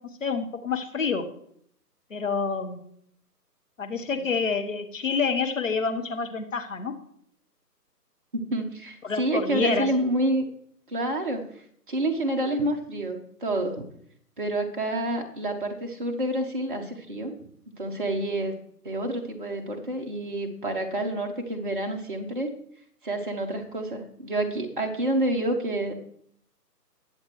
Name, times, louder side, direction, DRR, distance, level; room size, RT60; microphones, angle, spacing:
voice 1, 0.2-1.2 2.1-2.8 3.8-6.9 9.0-9.9, left 5 dB, 50° left, 6 dB, 1.3 m, -27 dB
voice 2, 8.3-10.4 10.9-11.4 11.9-13.9 14.4-17.3 17.8-18.5 18.8-22.5 23.0-25.9, right 1 dB, 30° right, 2 dB, 1.3 m, -28 dB
20.5 x 7.3 x 3.2 m, 0.67 s
figure-of-eight pair, 150°, 49 cm